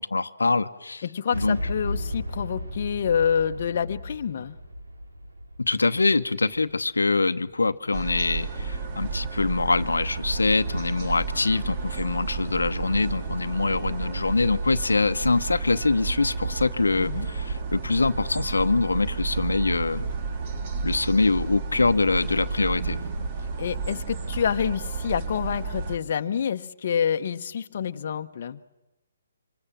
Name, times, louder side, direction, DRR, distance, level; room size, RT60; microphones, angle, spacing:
voice 1, 0.0-1.0 1.3-1.6 5.6-20.0 20.8-23.0, left 3 dB, 85° left, 9 dB, 1.0 m, -24 dB
voice 2, 1.0-4.6 16.9-17.3 23.6-28.6, left 7 dB, 55° left, 7 dB, 1.0 m, -27 dB
Boom, 1.3-7.2, equal, 85° right, 4.7 m, -35 dB
sound 1, 7.9-26.0, right 4 dB, 40° right, 2.4 m, -31 dB
26.5 x 25.5 x 7.5 m, 1.0 s
figure-of-eight pair, 140°, 0 cm